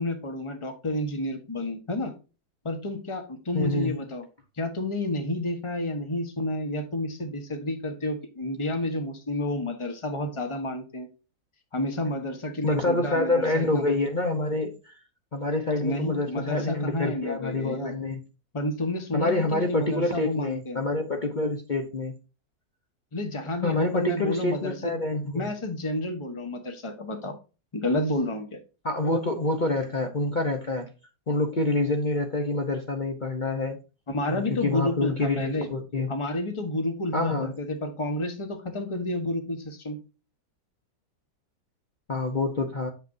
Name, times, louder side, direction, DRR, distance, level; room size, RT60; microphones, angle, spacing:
voice 1, 0.0-2.1 2.6-4.2 4.6-11.1 11.7-13.8 15.8-17.9 18.5-20.8 23.1-24.7 25.3-27.3 27.7-28.6 34.1-35.7 36.1-40.0, left 1 dB, 20° left, 1.2 m, -30 dB
voice 2, 3.5-4.0 12.6-14.9 15.3-18.2 19.1-22.2 23.6-25.5 28.8-30.9 31.3-33.8 34.3-36.1 37.1-37.5 42.1-42.9, left 2 dB, 35° left, 0.8 m, -27 dB
8.0 x 6.8 x 2.7 m
omnidirectional pair, 1.7 m